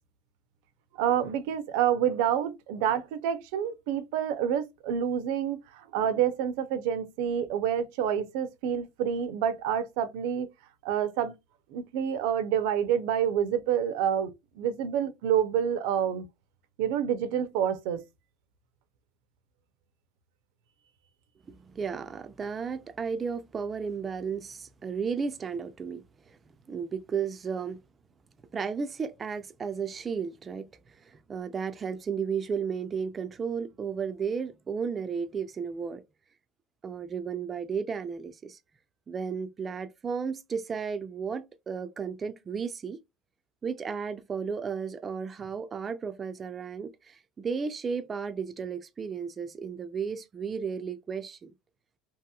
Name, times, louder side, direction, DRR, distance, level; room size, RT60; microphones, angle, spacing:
voice 1, 1.0-10.5 10.8-11.3 11.7-16.3 16.8-18.0, right 9 dB, 70° right, 0.5 m, -28 dB
voice 2, 21.5-26.0 26.3-26.4 26.7-27.8 28.5-36.0 36.8-38.6 39.1-43.0 43.6-51.5, right 6 dB, 20° right, 0.4 m, -34 dB
2.9 x 2.8 x 2.3 m
supercardioid pair, 145°, 0 cm